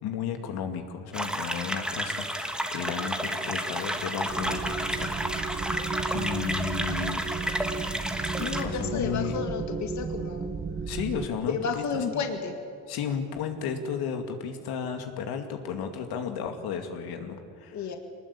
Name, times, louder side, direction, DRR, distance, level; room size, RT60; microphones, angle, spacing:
voice 1, 0.0-7.2 8.6-9.4 10.9-12.2 12.9-17.9, left 7 dB, 70° left, 5 dB, 2.4 m, -34 dB
sound 1, 1.1-8.6, right 1 dB, ahead, 1.5 m, -31 dB
sound 2, 4.3-11.3, right 4 dB, 25° right, 1.2 m, -34 dB
voice 2, 8.4-10.5 11.5-12.5 17.7-18.0, left 5 dB, 45° left, 4 dB, 2.0 m, -31 dB
24.0 x 20.0 x 8.6 m, 2.4 s
cardioid pair, 140°, 39 cm